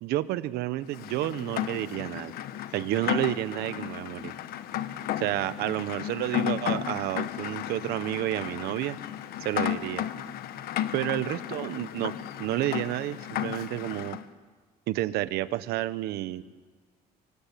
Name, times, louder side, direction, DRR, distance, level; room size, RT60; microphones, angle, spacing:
voice 1, 0.0-2.3 2.7-4.3 5.2-9.0 9.4-10.1 10.9-12.1 12.4-14.2 14.9-16.4, right 15 dB, 80° right, 15 dB, 1.1 m, -30 dB
Rain, 0.9-14.2, left 11 dB, 70° left, 1.3 m, -34 dB
26.0 x 24.0 x 8.5 m, 1.4 s
cardioid pair, 130°, 16 cm